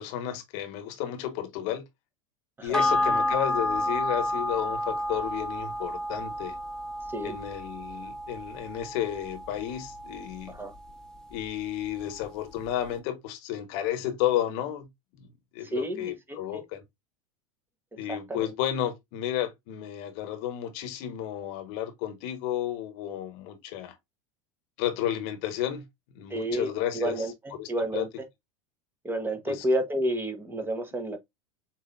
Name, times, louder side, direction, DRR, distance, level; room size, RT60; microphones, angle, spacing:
voice 1, 0.0-1.9 2.6-6.6 7.2-10.6 11.3-14.9 15.2-16.8 18.0-24.0 24.8-25.8 26.1-27.3 27.6-28.1 29.5-29.6, left 11 dB, 55° left, 1.2 m, -32 dB
sound 1, 2.7-11.5 11.8-11.9, left 1 dB, 5° left, 0.9 m, -31 dB
voice 2, 15.7-16.6 18.1-18.5 26.3-27.3 27.7-28.1 29.0-31.2, right 1 dB, 10° right, 1.1 m, -30 dB
7.0 x 2.8 x 2.5 m
hypercardioid pair, 85°, 17 cm